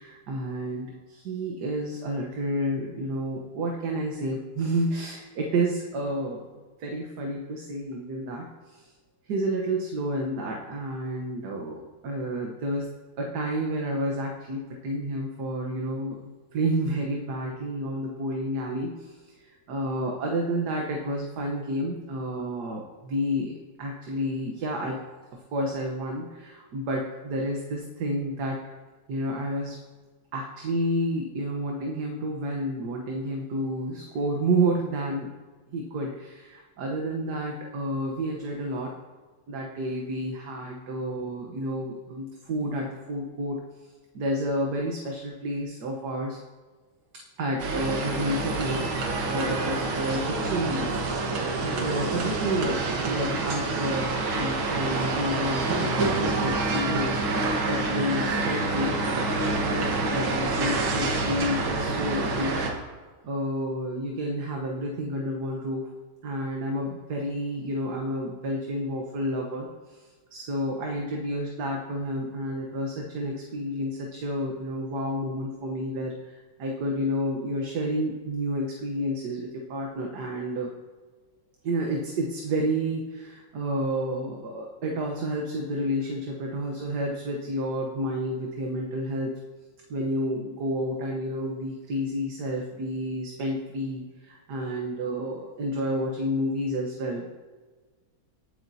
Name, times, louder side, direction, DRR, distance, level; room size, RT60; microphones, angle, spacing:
voice 1, 0.0-6.4 6.8-8.9 9.3-12.9 13.2-16.2 16.5-25.0 25.5-28.6 29.1-29.8 30.3-35.3 35.7-38.9 39.5-43.6 44.1-46.4 47.4-48.9 49.3-51.0 51.6-59.0 59.4-62.6 63.2-65.9 66.2-70.0 70.3-80.7 81.6-89.4 89.9-97.3, right 1 dB, 60° right, 0 dB, 1.5 m, -30 dB
sound 1, 47.6-62.7, right 3 dB, 80° right, 2.2 m, -27 dB
19.5 x 7.9 x 2.8 m, 1.3 s
omnidirectional pair, 2.2 m